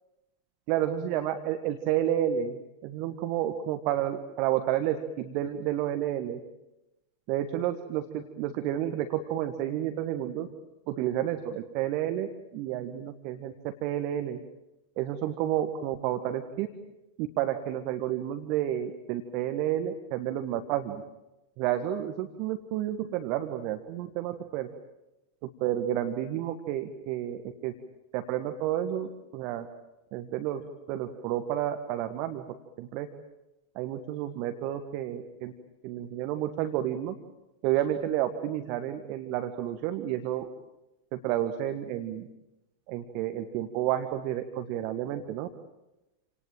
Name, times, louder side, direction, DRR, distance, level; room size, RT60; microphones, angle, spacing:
voice 1, 0.7-6.4 7.3-10.5 10.9-14.4 15.0-16.7 17.2-21.0 21.6-24.7 25.4-27.7 28.1-29.7 30.1-30.6 30.9-32.4 32.8-33.1 33.7-35.5 35.8-37.1 37.6-40.5 41.1-42.3 42.9-45.5, right 12 dB, 45° right, 8 dB, 1.6 m, -30 dB
28.5 x 18.5 x 9.0 m, 0.97 s
figure-of-eight pair, 90°, 0 cm